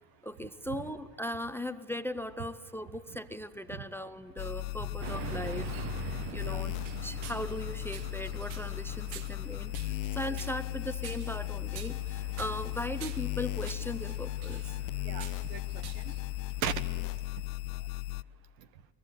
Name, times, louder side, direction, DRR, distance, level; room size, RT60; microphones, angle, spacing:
voice 1, 0.2-5.7 6.0-14.8, left 1 dB, 5° left, 14 dB, 0.5 m, -39 dB
sound 1, 4.4-18.2, left 19 dB, 70° left, 0.6 m, -36 dB
sound 2, 5.0-17.0, right 11 dB, 65° right, 1.1 m, -45 dB
voice 2, 6.1-6.7 10.3-10.4 15.0-16.2 16.6-16.8 17.1-17.4 17.7-17.9 18.6-18.7, right 10 dB, 85° right, 13 dB, 1.5 m, -40 dB
22.5 x 21.0 x 7.9 m, 2.1 s
supercardioid pair, 115°, 49 cm